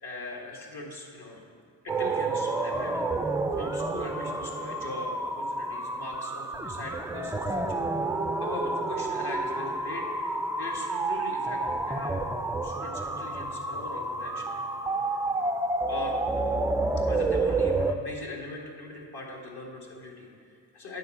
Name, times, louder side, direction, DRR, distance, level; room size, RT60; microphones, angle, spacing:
voice 1, 0.0-1.4 1.8-7.8 8.4-12.2 12.6-14.6 15.9-16.2 17.0-21.0, left 2 dB, 55° left, -1 dB, 2.1 m, -40 dB
sound 1, 1.9-17.9, right 2 dB, 5° right, 0.3 m, -29 dB
9.4 x 4.5 x 6.7 m, 2.4 s
cardioid pair, 60°, 44 cm